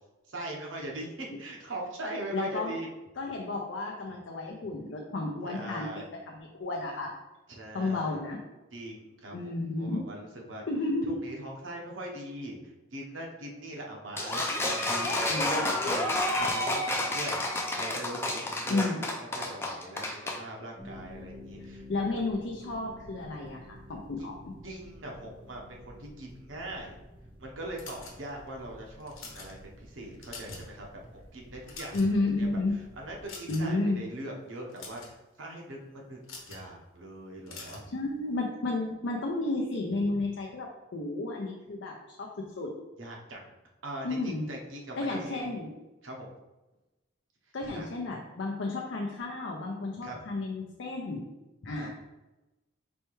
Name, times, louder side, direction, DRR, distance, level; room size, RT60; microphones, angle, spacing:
voice 1, 0.3-2.9 5.4-6.0 7.5-8.2 8.7-10.6 11.0-18.8 19.3-21.8 24.2-27.0 27.4-36.2 36.5-37.8 43.0-43.5 43.8-45.4 46.0-46.3 47.7-47.9 50.0-50.2 51.8-51.9, right 1 dB, 75° right, -1 dB, 0.9 m, -41 dB
voice 2, 2.3-2.8 3.2-5.9 6.3-7.1 7.7-8.4 9.3-10.0 10.7-11.2 15.3-15.7 18.4-19.0 21.6-24.5 31.9-32.7 33.5-34.0 37.9-42.3 42.6-42.7 44.0-44.5 45.0-45.7 47.5-51.2 51.6-51.9, left 2 dB, 65° left, 0 dB, 0.5 m, -32 dB
sound 1, 14.2-20.4, left 1 dB, 10° left, 0.4 m, -30 dB
sound 2, 20.8-33.3, left 1 dB, 25° right, 0.7 m, -50 dB
sound 3, 27.8-28.5 29.0-29.5 30.0-30.7 31.0-31.2 31.5-32.3 33.3-33.8 34.6-35.1 36.2-36.7 37.5-37.9, left 4 dB, 90° left, 1.0 m, -45 dB
4.3 x 3.3 x 3.1 m, 1.0 s
head